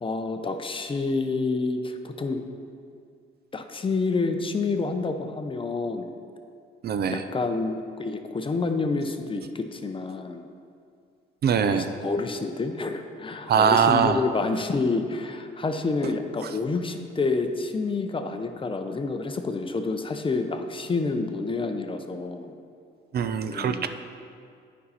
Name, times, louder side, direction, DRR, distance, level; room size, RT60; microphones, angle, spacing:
voice 1, 0.0-2.4 3.5-6.1 7.1-10.4 11.5-22.5 23.5-23.9, left 3 dB, 25° left, 6 dB, 0.6 m, -28 dB
voice 2, 6.8-7.2 11.4-11.9 13.5-14.2 23.1-23.9, right 7 dB, 55° right, 9 dB, 0.5 m, -22 dB
9.3 x 5.5 x 4.2 m, 2.3 s
cardioid pair, 90°, 20 cm